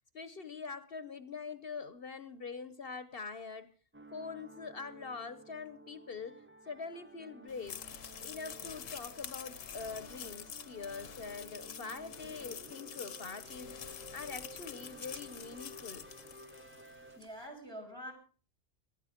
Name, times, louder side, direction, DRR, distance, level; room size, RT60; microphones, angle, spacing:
voice 1, 0.1-3.7 4.1-7.8 8.2-13.7 14.1-16.1, left 5 dB, 50° left, 13 dB, 1.0 m, -44 dB
sound 1, 3.9-17.2, right 2 dB, 15° right, 0.5 m, -54 dB
sound 2, 7.5-17.0, left 8 dB, 85° left, 1.3 m, -47 dB
sound 3, 11.6-11.7 11.9-12.2 13.1-13.6 14.7-15.3 17.0-17.3, right 2 dB, 30° right, 1.8 m, -58 dB
voice 2, 17.2-18.1, equal, 55° right, 4 dB, 6.1 m, -45 dB
18.0 x 13.0 x 5.1 m, 0.42 s
omnidirectional pair, 1.3 m